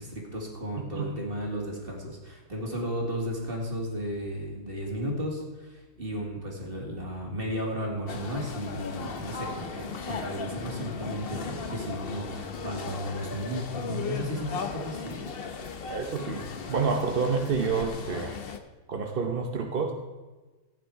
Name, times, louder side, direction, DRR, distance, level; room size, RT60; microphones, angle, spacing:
voice 1, 0.0-15.4, equal, 30° right, 0 dB, 2.6 m, -34 dB
voice 2, 0.8-1.1 14.6-14.7 15.9-18.4 18.9-19.9, right 5 dB, 45° right, 3 dB, 0.7 m, -29 dB
sound 1, 8.1-18.6, left 5 dB, 55° left, 0.6 m, -37 dB
15.0 x 9.0 x 4.7 m, 1.2 s
omnidirectional pair, 2.1 m